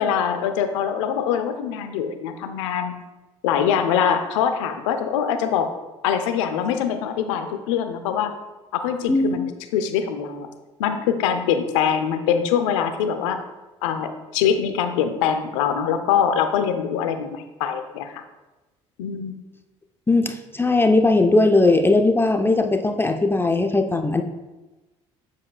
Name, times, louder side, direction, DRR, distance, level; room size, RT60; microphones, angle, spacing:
voice 1, 0.0-2.9 3.4-5.7 6.0-8.3 8.7-9.4 9.7-10.5 10.8-13.4 13.8-18.2 19.0-19.3, left 8 dB, 80° left, 8 dB, 0.6 m, -23 dB
voice 2, 9.1-9.4 20.1-24.2, left 2 dB, 15° left, 6 dB, 0.6 m, -18 dB
7.3 x 7.3 x 2.3 m, 1.1 s
hypercardioid pair, 60°, 16 cm